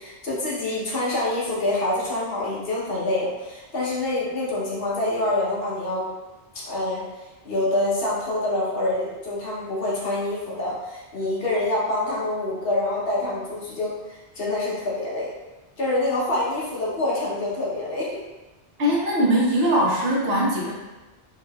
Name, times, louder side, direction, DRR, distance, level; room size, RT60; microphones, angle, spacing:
voice 1, 0.0-6.1 6.6-7.1 7.4-15.4 15.8-18.1, left 1 dB, 65° left, -6 dB, 1.1 m, -26 dB
voice 2, 18.8-20.7, equal, 70° right, -4 dB, 1.0 m, -21 dB
3.9 x 2.7 x 2.3 m, 1.1 s
omnidirectional pair, 1.1 m